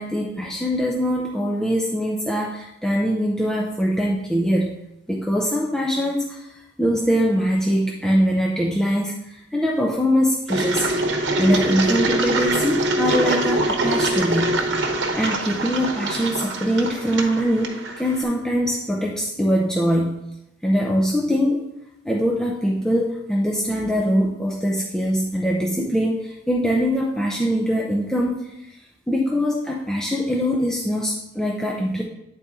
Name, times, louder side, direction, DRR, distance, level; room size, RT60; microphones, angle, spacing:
voice 1, 0.0-4.7 5.1-6.5 6.8-10.9 11.4-14.6 15.2-20.1 20.6-21.7 22.1-28.4 29.1-32.0, equal, 5° left, -2 dB, 0.5 m, -22 dB
Engine, 10.5-18.2, right 2 dB, 75° right, 0.9 m, -24 dB
9.0 x 4.0 x 3.6 m, 0.87 s
head